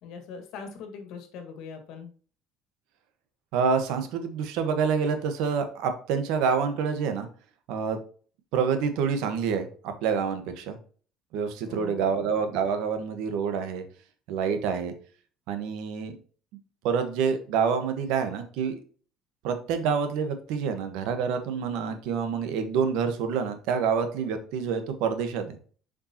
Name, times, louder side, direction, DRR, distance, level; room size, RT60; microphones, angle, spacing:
voice 1, 0.0-2.1 11.7-12.2, left 5 dB, 70° left, 6 dB, 1.8 m, -41 dB
voice 2, 3.5-7.3 7.7-8.0 8.5-10.8 11.3-13.8 14.3-14.9 15.5-16.1 16.8-18.8 19.4-25.6, right 6 dB, 80° right, 8 dB, 1.3 m, -27 dB
7.0 x 5.2 x 2.9 m, 0.42 s
cardioid pair, 125°, 0 cm